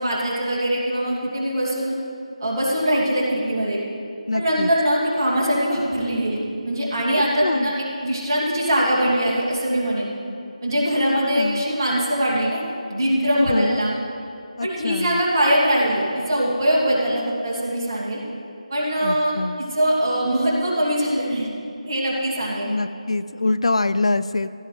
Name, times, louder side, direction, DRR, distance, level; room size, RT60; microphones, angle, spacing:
voice 1, 0.0-2.0 2.4-3.8 4.3-7.7 8.0-10.1 10.6-12.6 12.9-13.9 14.6-18.2 18.7-19.3 19.6-21.5 21.9-22.8, equal, 35° right, -6 dB, 2.6 m, -22 dB
voice 2, 4.3-4.7 7.4-7.7 11.1-11.6 13.3-13.8 14.6-15.2 19.0-19.6 22.6-24.5, left 2 dB, 60° left, 14 dB, 0.4 m, -24 dB
16.0 x 11.0 x 3.3 m, 2.5 s
figure-of-eight pair, 160°, 4 cm